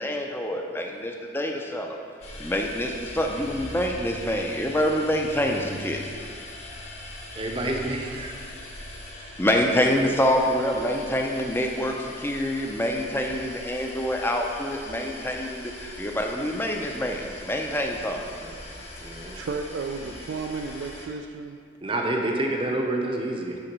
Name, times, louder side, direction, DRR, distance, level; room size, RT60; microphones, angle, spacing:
voice 1, 0.0-2.0 2.4-6.0 9.4-18.2, equal, 10° left, 2 dB, 0.5 m, -26 dB
sound 1, 2.2-21.1, left 1 dB, 35° left, 1.0 m, -41 dB
voice 2, 7.4-8.5 18.4-18.5 19.0-19.4 21.8-23.6, right 1 dB, 25° right, 1 dB, 0.7 m, -28 dB
voice 3, 19.3-21.6, right 4 dB, 70° right, 5 dB, 0.3 m, -33 dB
7.9 x 3.9 x 6.0 m, 2.2 s
head